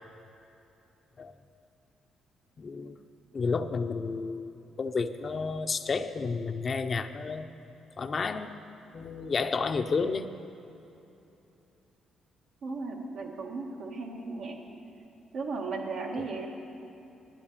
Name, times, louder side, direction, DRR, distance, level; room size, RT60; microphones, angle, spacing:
voice 1, 2.6-3.0 3.3-7.5 8.0-8.5 8.9-10.3 16.2-16.3, left 4 dB, 40° left, 9 dB, 0.6 m, -31 dB
voice 2, 12.6-14.6 15.3-16.5, right 3 dB, 75° right, 0 dB, 1.8 m, -35 dB
11.5 x 8.1 x 8.8 m, 2.9 s
cardioid pair, 90°, 0 cm